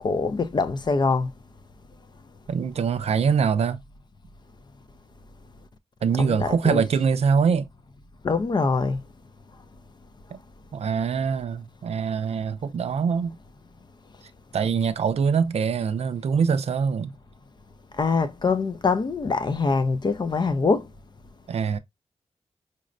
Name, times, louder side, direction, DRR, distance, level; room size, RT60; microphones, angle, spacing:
voice 1, 0.0-1.3 6.1-6.8 8.2-9.0 18.0-20.9, left 4 dB, 40° left, 0.4 m, -24 dB
voice 2, 2.5-3.8 6.0-7.7 10.3-10.4 10.7-13.4 14.5-17.1 21.5-21.8, right 6 dB, 70° right, 0.4 m, -23 dB
5.1 x 2.0 x 2.4 m
wide cardioid pair, 85°, 11 cm